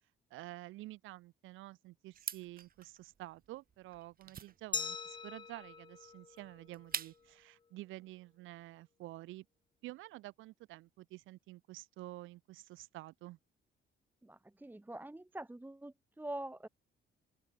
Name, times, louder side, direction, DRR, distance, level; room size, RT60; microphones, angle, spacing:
voice 1, 0.3-9.5 9.8-13.4, right 18 dB, 85° right, 0.5 m, -50 dB
sound 1, 2.1-7.4, right 7 dB, 45° right, 1.7 m, -46 dB
Glass, 4.7-7.5, left 5 dB, 25° left, 0.4 m, -43 dB
voice 2, 14.2-16.7, right 1 dB, 10° right, 1.0 m, -45 dB
open air
cardioid pair, 90°, 20 cm